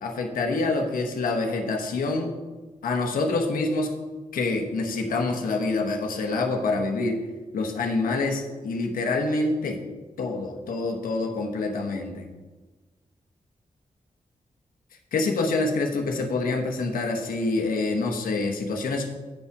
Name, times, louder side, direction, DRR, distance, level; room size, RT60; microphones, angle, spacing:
voice 1, 0.0-2.3 2.8-3.9 4.3-7.2 7.5-9.8 10.2-12.2 15.1-19.1, left 3 dB, 90° left, 3 dB, 1.1 m, -26 dB
9.1 x 5.8 x 4.7 m, 1.3 s
cardioid pair, 45°, 14 cm